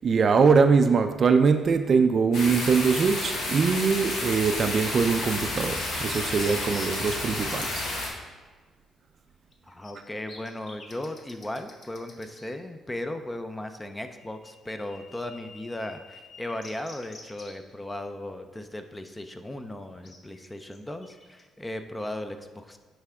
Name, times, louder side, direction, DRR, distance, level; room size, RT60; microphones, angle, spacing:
voice 1, 0.0-7.9, right 5 dB, 50° right, 8 dB, 0.4 m, -22 dB
sound 1, 2.3-8.1, left 2 dB, 90° left, 1.7 m, -31 dB
sound 2, 5.7-7.6 9.5-12.5 14.0-17.5 20.0-21.4, left 3 dB, 40° left, 0.9 m, -48 dB
voice 2, 9.7-22.8, left 1 dB, 15° left, 7 dB, 0.5 m, -36 dB
9.4 x 3.3 x 3.6 m, 1.4 s
cardioid pair, 90°, 0 cm